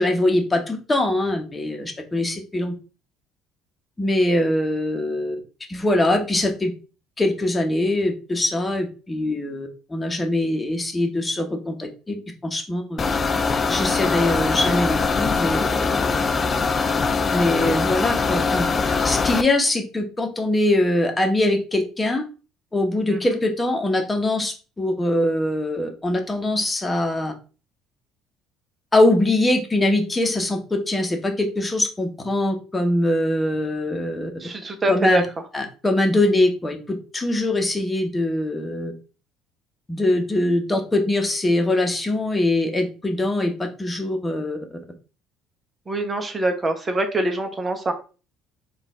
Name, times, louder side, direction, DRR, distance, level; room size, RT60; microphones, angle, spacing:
voice 1, 0.0-2.7 4.0-5.4 5.7-6.7 7.2-12.2 12.4-13.1 13.7-16.2 17.3-18.7 19.0-22.2 22.7-27.3 28.9-34.3 34.9-35.2 35.5-38.9 39.9-44.6, left 1 dB, 20° left, 4 dB, 1.2 m, -22 dB
sound 1, 13.0-19.4, left 4 dB, 35° left, 0.4 m, -22 dB
voice 2, 34.4-35.2 45.9-47.9, right 1 dB, 25° right, 6 dB, 1.0 m, -24 dB
3.9 x 2.6 x 3.7 m, 0.35 s
hypercardioid pair, 60°, 0 cm